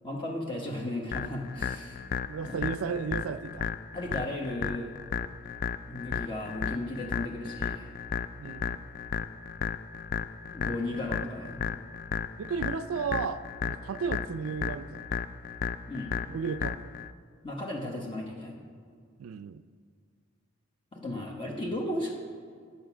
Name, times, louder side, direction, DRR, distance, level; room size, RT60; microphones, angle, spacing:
voice 1, 0.0-2.0 2.4-2.7 3.9-4.9 5.9-7.9 10.5-11.6 15.9-16.1 17.4-18.6 20.9-22.1, left 1 dB, 25° left, -1 dB, 1.1 m, -35 dB
sound 1, 1.1-17.1, left 7 dB, 40° left, 0.3 m, -34 dB
voice 2, 2.3-3.7 8.4-8.8 12.4-15.2 16.3-16.9 19.2-19.6, right 6 dB, 80° right, 13 dB, 0.4 m, -34 dB
10.5 x 6.8 x 6.0 m, 2.2 s
head